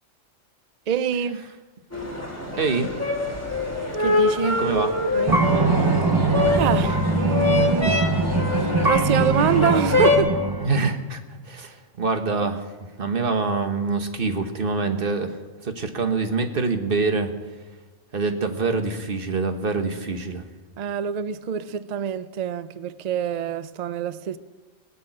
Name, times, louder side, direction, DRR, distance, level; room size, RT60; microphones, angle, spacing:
voice 1, 0.9-1.5 4.0-4.6 5.1-5.5 6.6-8.0 8.8-10.4 12.3-12.5 20.8-24.4, right 8 dB, 85° right, 0.3 m, -25 dB
sound 1, 1.9-10.2, left 2 dB, 10° left, 2.5 m, -24 dB
voice 2, 2.6-2.9 4.6-4.9 10.6-12.6 13.0-15.4 15.6-17.3 18.1-20.4, right 4 dB, 45° right, 1.4 m, -25 dB
sound 2, 5.3-10.7, right 2 dB, 25° right, 0.5 m, -22 dB
19.0 x 7.1 x 8.9 m
omnidirectional pair, 1.4 m